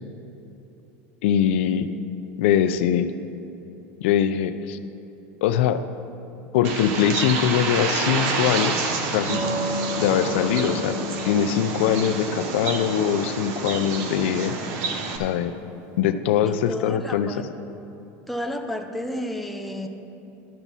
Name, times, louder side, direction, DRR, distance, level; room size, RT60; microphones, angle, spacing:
voice 1, 1.2-1.9 2.4-3.1 4.0-4.8 5.4-5.9 6.5-8.8 9.1-9.4 10.0-11.0 11.2-14.5 15.2-15.5 16.0-17.4, left 9 dB, 75° left, 11 dB, 0.4 m, -22 dB
Bird, 6.6-15.2, right 4 dB, 50° right, 0.8 m, -28 dB
sound 1, 9.3-15.5, left 1 dB, 80° right, 1.9 m, -34 dB
voice 2, 16.5-17.4 18.3-19.9, left 1 dB, ahead, 4 dB, 0.4 m, -31 dB
12.0 x 7.1 x 4.1 m, 2.9 s
supercardioid pair, 165°, 6 cm